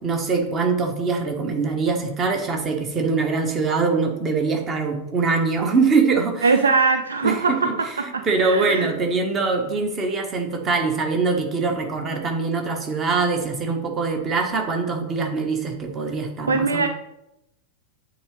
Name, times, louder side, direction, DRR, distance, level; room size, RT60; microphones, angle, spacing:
voice 1, 0.0-6.7 7.2-7.9 8.2-16.9, right 4 dB, 25° right, 3 dB, 1.2 m, -23 dB
voice 2, 6.4-8.9 16.5-16.9, right 4 dB, 70° right, 7 dB, 0.4 m, -21 dB
8.5 x 4.0 x 3.2 m, 0.86 s
figure-of-eight pair, 90°, 0 cm